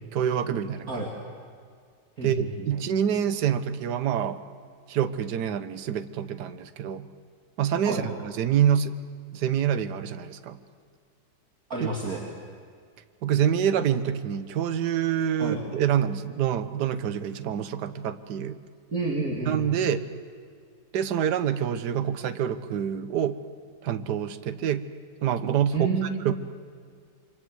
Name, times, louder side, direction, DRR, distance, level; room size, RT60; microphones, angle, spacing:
voice 1, 0.1-1.0 2.2-4.4 4.9-7.1 7.6-8.9 9.3-10.6 11.8-11.9 13.2-18.6 19.5-20.1 20.9-23.4 23.8-24.9 25.2-25.9 26.2-26.3, right 9 dB, 65° right, 11 dB, 1.5 m, -26 dB
voice 2, 2.2-2.7 7.8-8.0 11.7-12.2 15.4-15.6 18.9-19.6 25.7-26.2, right 3 dB, 50° right, -2 dB, 3.1 m, -29 dB
27.5 x 24.5 x 7.9 m, 2.1 s
omnidirectional pair, 2.0 m